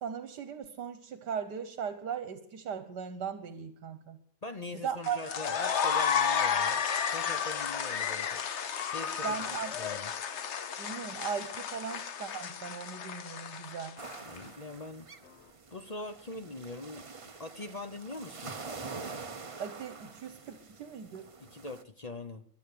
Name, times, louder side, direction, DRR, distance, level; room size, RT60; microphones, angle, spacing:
voice 1, 0.0-4.2 4.8-5.2 9.2-9.7 10.8-13.9 19.6-21.2, right 7 dB, 80° right, 8 dB, 1.7 m, -38 dB
voice 2, 4.4-6.8 7.1-8.4 8.9-10.1 14.2-15.1 15.7-18.5 21.4-22.5, left 2 dB, 35° left, 7 dB, 0.7 m, -42 dB
sound 1, 5.0-14.4, left 7 dB, 50° left, 1.0 m, -32 dB
sound 2, 14.0-21.8, right 4 dB, 30° right, 0.6 m, -46 dB
23.0 x 8.3 x 6.7 m, 0.64 s
omnidirectional pair, 1.8 m